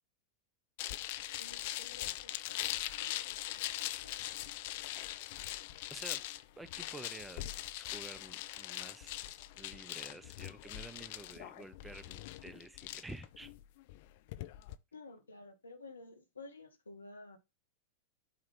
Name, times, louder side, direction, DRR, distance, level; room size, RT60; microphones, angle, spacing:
sound 1, 0.8-14.8, left 15 dB, 50° left, 0.5 m, -41 dB
voice 1, 1.4-3.6 4.0-4.2 14.9-17.4, left 3 dB, 75° left, 1.4 m, -53 dB
voice 2, 5.9-6.2 6.6-7.5 7.8-13.5, right 2 dB, 5° right, 0.5 m, -50 dB
8.5 x 3.1 x 4.6 m
figure-of-eight pair, 90°, 0 cm